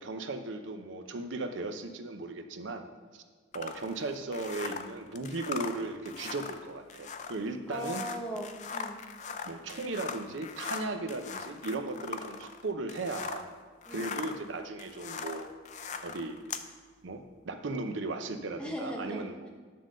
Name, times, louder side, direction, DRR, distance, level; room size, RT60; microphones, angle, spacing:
voice 1, 0.0-3.2 3.5-8.0 9.4-13.5 13.9-15.5 16.0-16.4 17.0-19.5, right 2 dB, 80° right, 7 dB, 0.7 m, -37 dB
sound 1, 3.5-13.5 13.8-16.7, left 6 dB, 40° left, 0.4 m, -40 dB
voice 2, 7.7-9.0 13.8-14.2 18.6-19.5, equal, 5° left, -1 dB, 0.9 m, -39 dB
9.4 x 3.8 x 6.4 m, 1.5 s
head